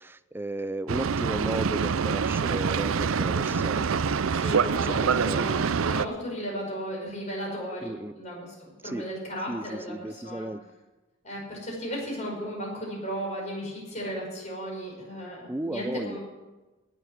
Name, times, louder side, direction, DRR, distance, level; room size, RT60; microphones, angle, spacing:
voice 1, 0.0-3.8 4.7-5.4 7.8-8.1 8.8-9.1 9.5-10.6 15.5-16.2, right 1 dB, 10° right, 14 dB, 0.4 m, -34 dB
Boat Water vehicle, 0.9-6.0, right 6 dB, 75° right, 0.5 m, -25 dB
voice 2, 3.4-3.9 4.3-8.5 8.8-10.5 11.2-16.2, equal, 35° left, -2 dB, 5.4 m, -35 dB
17.5 x 7.3 x 8.0 m, 1.2 s
head